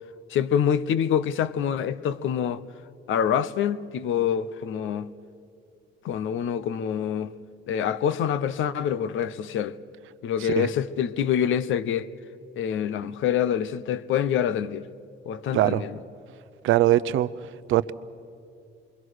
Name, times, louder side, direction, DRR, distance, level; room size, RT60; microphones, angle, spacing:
voice 1, 0.3-2.6 3.1-5.1 6.0-7.3 7.7-9.8 10.2-12.1 12.6-14.9 15.3-16.0, left 9 dB, 80° left, 0.8 m, -26 dB
voice 2, 16.6-17.3 17.7-17.9, right 14 dB, 85° right, 0.6 m, -21 dB
27.0 x 23.0 x 6.4 m
cardioid pair, 90°, 20 cm